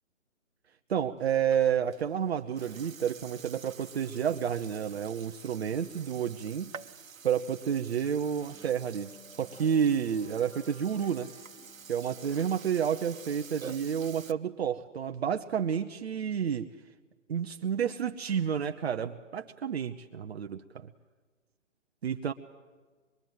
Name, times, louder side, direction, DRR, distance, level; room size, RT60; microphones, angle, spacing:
voice 1, 0.9-6.7 7.2-11.3 11.9-16.7 17.3-20.9 22.0-22.3, right 8 dB, 50° right, 5 dB, 1.0 m, -30 dB
Burping eructation, 1.2-14.3, right 6 dB, 75° right, 1.3 m, -49 dB
sound 1, 8.0-14.9, left 4 dB, 70° left, 3.4 m, -57 dB
24.0 x 22.5 x 9.3 m, 1.4 s
figure-of-eight pair, 145°, 40 cm